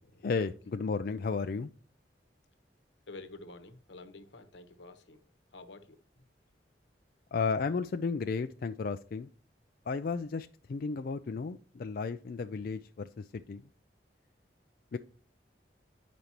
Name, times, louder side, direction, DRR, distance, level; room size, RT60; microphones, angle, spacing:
voice 1, 0.2-1.7 7.3-9.3 9.9-13.6 14.9-15.0, left 4 dB, 55° left, 0.4 m, -33 dB
voice 2, 3.1-5.2 5.5-6.3, left 2 dB, 85° left, 1.0 m, -50 dB
9.6 x 5.1 x 2.9 m
head